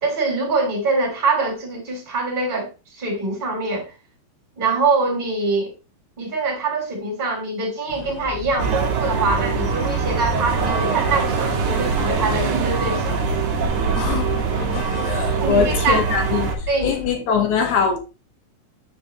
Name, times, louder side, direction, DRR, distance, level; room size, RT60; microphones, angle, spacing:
voice 1, 0.0-3.9 4.6-5.7 6.2-13.2 15.4-16.0 16.7-16.9, right 3 dB, 15° right, 2.3 m, -24 dB
sound 1, 7.9-17.2, left 2 dB, 90° left, 2.7 m, -35 dB
sound 2, 8.6-16.5, right 4 dB, 60° right, 2.3 m, -23 dB
voice 2, 14.0-18.0, left 6 dB, 70° left, 1.9 m, -23 dB
8.5 x 5.3 x 2.8 m
omnidirectional pair, 4.6 m